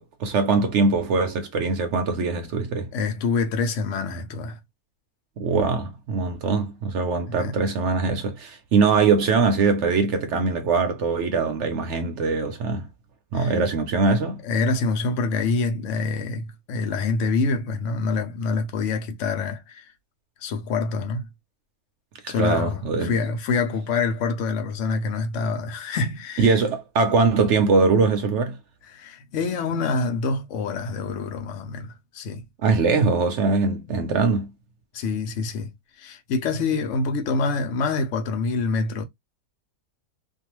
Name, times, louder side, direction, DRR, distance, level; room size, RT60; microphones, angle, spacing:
voice 1, 0.0-2.9 5.4-12.9 13.3-14.4 22.2-23.2 26.4-28.6 32.6-34.5, right 4 dB, 65° right, 0.8 m, -22 dB
voice 2, 2.9-4.6 7.3-7.5 13.3-13.5 14.4-19.9 20.4-21.3 22.3-26.5 28.9-32.5 34.9-35.7 36.0-39.0, left 4 dB, 60° left, 1.0 m, -26 dB
2.6 x 2.3 x 2.9 m
omnidirectional pair, 1.5 m